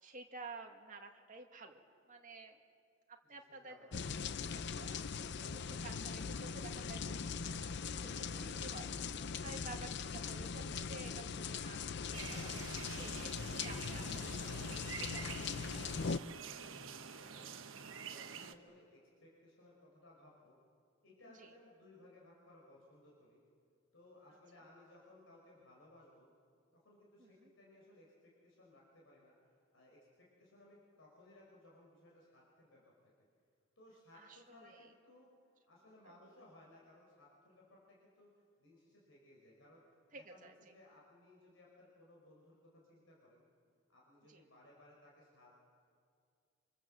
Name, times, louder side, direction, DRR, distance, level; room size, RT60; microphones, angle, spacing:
voice 1, 0.0-1.8 2.1-2.6 3.1-3.8 4.2-12.5 13.0-16.1 21.3-21.5 24.3-24.6 27.2-27.5 34.1-34.9 36.0-36.1 40.1-40.6 44.3-44.4, right 3 dB, 40° right, 3 dB, 2.0 m, -53 dB
voice 2, 3.2-4.2 17.2-20.6 21.0-23.4 23.9-26.3 26.7-29.3 29.7-32.9 33.8-35.3 35.7-38.3 38.6-43.4 43.9-45.6, left 1 dB, 75° left, -3 dB, 5.4 m, -62 dB
sound 1, 3.9-16.2, left 5 dB, 55° left, 0.6 m, -41 dB
sound 2, 12.1-18.5, right 6 dB, 75° right, 1.2 m, -48 dB
27.0 x 25.5 x 7.6 m, 2.3 s
head